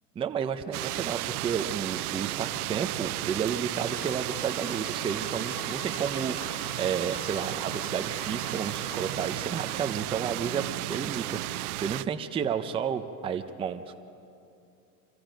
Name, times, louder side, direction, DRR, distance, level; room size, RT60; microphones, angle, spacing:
voice 1, 0.2-14.0, right 7 dB, 10° right, 6 dB, 0.6 m, -32 dB
sound 1, 0.7-12.0, right 18 dB, 80° right, 0.6 m, -33 dB
sound 2, 3.7-10.2, left 8 dB, 65° left, 1.6 m, -45 dB
27.0 x 25.0 x 5.1 m, 2.6 s
supercardioid pair, 140°, 45 cm